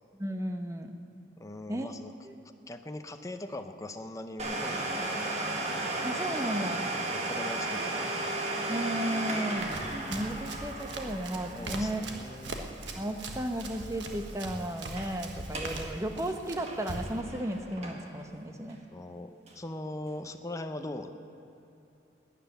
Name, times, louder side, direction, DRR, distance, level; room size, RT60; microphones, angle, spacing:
voice 1, 0.2-0.9 1.7-1.9 2.2-2.3 6.0-6.9 8.7-9.7 10.1-12.0 12.9-18.8, right 1 dB, 15° right, 6 dB, 0.9 m, -34 dB
voice 2, 1.4-2.1 2.7-5.5 7.1-8.1 11.5-12.6 18.9-21.1, left 1 dB, 20° left, 7 dB, 0.7 m, -41 dB
Domestic sounds home sounds, 4.4-13.8 14.1-14.2 14.8-15.1 15.4-15.8 16.2-18.2 18.7-18.8 19.5-19.6, right 2 dB, 35° right, 1.8 m, -35 dB
Run, 9.6-17.2, right 2 dB, 85° right, 1.4 m, -41 dB
12.5 x 10.0 x 9.2 m, 2.9 s
head